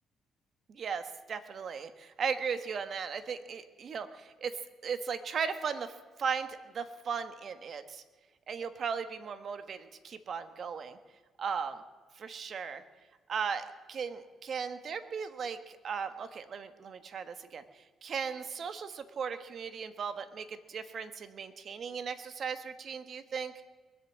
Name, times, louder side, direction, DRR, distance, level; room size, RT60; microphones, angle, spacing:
voice 1, 0.7-8.0 8.5-11.0 11.4-11.8 12.2-12.8 13.3-23.5, right 6 dB, 55° right, 10 dB, 1.3 m, -37 dB
22.0 x 8.3 x 7.5 m, 1.4 s
cardioid pair, 90°, 0 cm